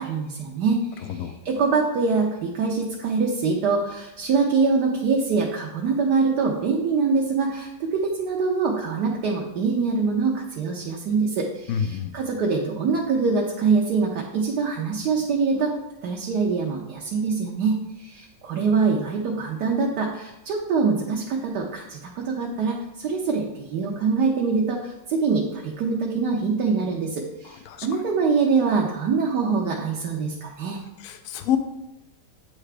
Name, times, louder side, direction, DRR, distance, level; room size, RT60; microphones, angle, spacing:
voice 1, 0.0-15.7 16.0-30.8, right 4 dB, 70° right, -1 dB, 1.3 m, -24 dB
voice 2, 11.7-12.1 27.7-27.9 31.0-31.6, left 9 dB, 65° left, 8 dB, 0.9 m, -27 dB
8.2 x 4.8 x 3.3 m, 0.93 s
omnidirectional pair, 1.9 m